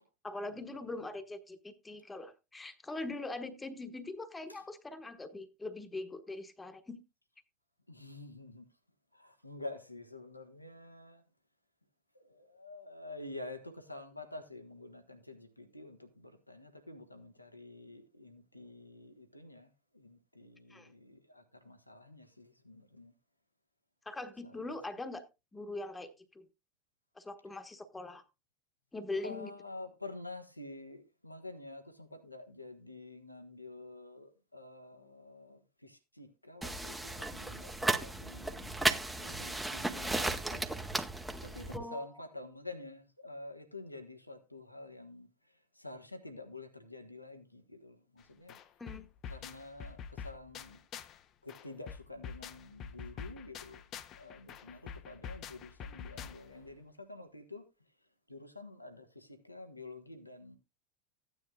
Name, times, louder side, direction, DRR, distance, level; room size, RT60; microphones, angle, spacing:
voice 1, 0.2-7.0 20.7-20.9 24.0-25.2 25.5-26.5 27.1-28.2 28.9-29.5 41.7-42.2 48.8-49.1, left 2 dB, 10° left, 1.3 m, -42 dB
voice 2, 7.9-8.7 9.1-11.2 12.1-23.1 24.4-24.7 29.2-40.7 41.4-45.3 45.7-48.5 49.3-50.8 51.4-53.8 54.1-57.6 58.3-60.6, left 2 dB, 90° left, 1.3 m, -49 dB
sound 1, 36.6-41.8, right 2 dB, 5° right, 1.0 m, -35 dB
sound 2, 48.2-48.3 48.5-51.2 51.5-56.6, left 7 dB, 40° left, 0.7 m, -46 dB
14.5 x 9.8 x 2.4 m
figure-of-eight pair, 80°, 0 cm